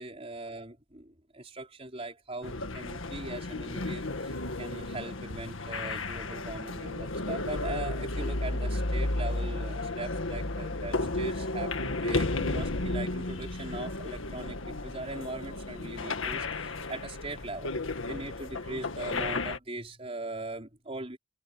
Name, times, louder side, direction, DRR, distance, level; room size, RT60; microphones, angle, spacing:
voice 1, 0.0-17.7 18.1-21.2, right 2 dB, 30° right, 5.1 m, -40 dB
sound 1, 2.4-19.6, left 2 dB, 80° left, 1.8 m, -33 dB
head